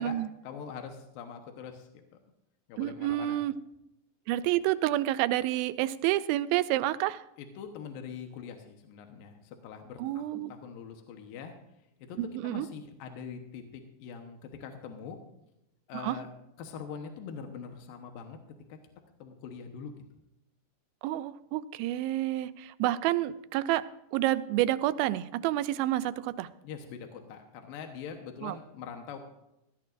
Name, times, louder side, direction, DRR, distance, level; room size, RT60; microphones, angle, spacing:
voice 1, 0.4-2.2 2.7-3.4 7.4-11.6 12.0-12.2 12.4-15.2 15.9-16.3 16.6-18.4 18.7-18.8 19.2-19.9 26.6-29.2, left 6 dB, 75° left, 5 dB, 2.7 m, -43 dB
voice 2, 2.8-3.5 4.3-7.2 10.0-10.5 12.2-12.7 16.0-16.2 21.0-23.8 24.1-26.5 28.4-28.5, right 14 dB, 85° right, 13 dB, 2.4 m, -29 dB
17.5 x 13.5 x 2.5 m, 0.86 s
omnidirectional pair, 4.2 m